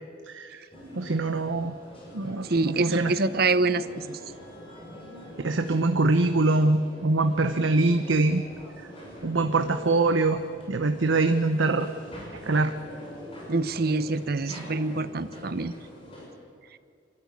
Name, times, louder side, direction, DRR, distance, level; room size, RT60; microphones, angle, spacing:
voice 1, 0.3-0.6 1.0-1.7 2.1-3.1 5.4-8.4 9.2-10.4 10.7-11.9 12.4-12.7, right 2 dB, 90° right, 8 dB, 0.9 m, -23 dB
sound 1, 0.7-16.3, equal, 30° left, 6.4 m, -44 dB
voice 2, 2.4-4.2 13.5-15.7, right 3 dB, 55° right, 14 dB, 0.8 m, -26 dB
26.0 x 13.5 x 9.8 m, 2.2 s
head